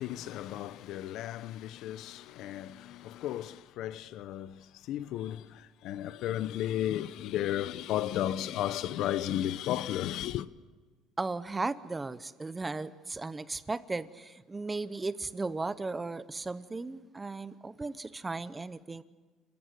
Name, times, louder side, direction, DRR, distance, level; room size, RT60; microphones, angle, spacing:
voice 1, 0.0-10.5, left 12 dB, 60° left, 0.7 m, -34 dB
voice 2, 11.2-19.0, right 3 dB, 15° right, 0.7 m, -36 dB
29.0 x 14.5 x 9.1 m
cardioid pair, 155°, 0 cm